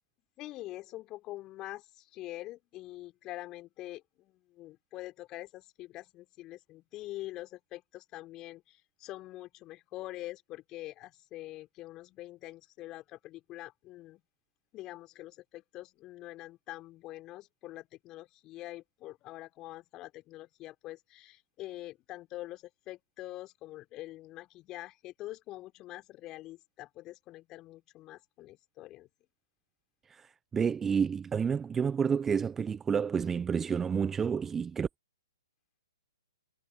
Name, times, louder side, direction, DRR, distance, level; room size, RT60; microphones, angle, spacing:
voice 1, 0.4-14.2 14.7-29.1, left 16 dB, 25° left, 3.4 m, -45 dB
voice 2, 30.1-34.9, right 6 dB, 10° right, 0.5 m, -30 dB
figure-of-eight pair, 125°, 2 cm